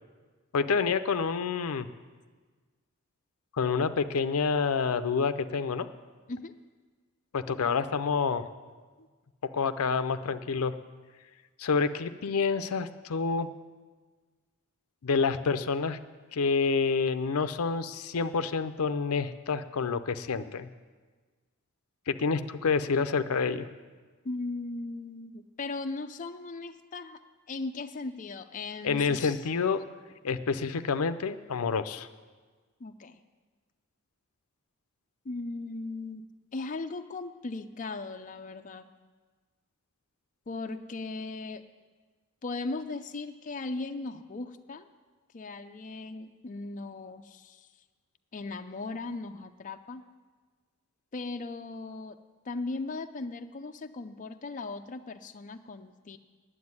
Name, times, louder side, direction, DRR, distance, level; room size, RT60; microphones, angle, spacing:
voice 1, 0.5-1.9 3.6-5.9 7.3-8.4 9.5-10.7 11.6-13.5 15.0-16.0 16.3-20.7 22.1-23.7 28.8-29.8 30.2-32.1, left 5 dB, 85° left, 11 dB, 0.5 m, -28 dB
voice 2, 24.2-27.2 27.5-29.4 32.8-33.2 35.2-36.3 36.5-38.9 40.5-41.6 42.4-44.9 45.3-47.7 48.3-50.0 51.1-52.2 52.5-56.2, left 3 dB, 35° left, 7 dB, 0.4 m, -38 dB
9.6 x 7.8 x 9.5 m, 1.4 s
head